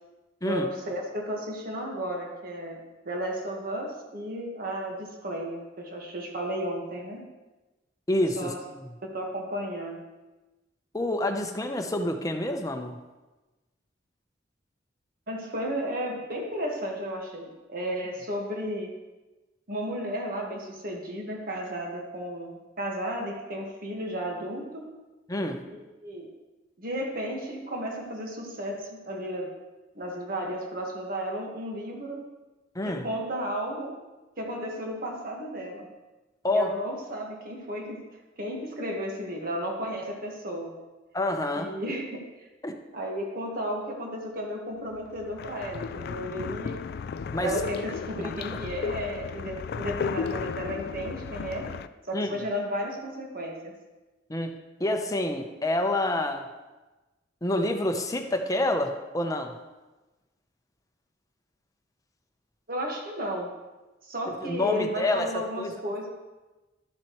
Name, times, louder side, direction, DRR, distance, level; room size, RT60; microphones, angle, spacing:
voice 1, 0.4-7.2 8.4-8.6 9.1-10.0 15.3-18.9 19.7-24.8 25.7-26.3 26.8-29.5 29.9-32.2 32.8-33.9 34.4-35.9 36.5-38.0 38.4-40.7 41.5-42.3 42.9-46.8 47.4-51.7 52.0-53.7 62.7-63.5 64.1-66.1, equal, 50° right, 1 dB, 1.5 m, -33 dB
voice 2, 8.1-8.9 10.9-13.0 25.3-25.6 32.7-33.1 36.4-36.7 41.1-41.7 42.6-42.8 47.3-47.6 48.2-48.4 52.1-52.4 54.3-56.5 57.4-59.5 64.4-65.3 65.6-66.1, left 1 dB, 20° left, 4 dB, 0.7 m, -28 dB
sound 1, 45.0-51.9, left 5 dB, 55° left, 0.3 m, -34 dB
12.0 x 7.5 x 3.1 m, 1.1 s
head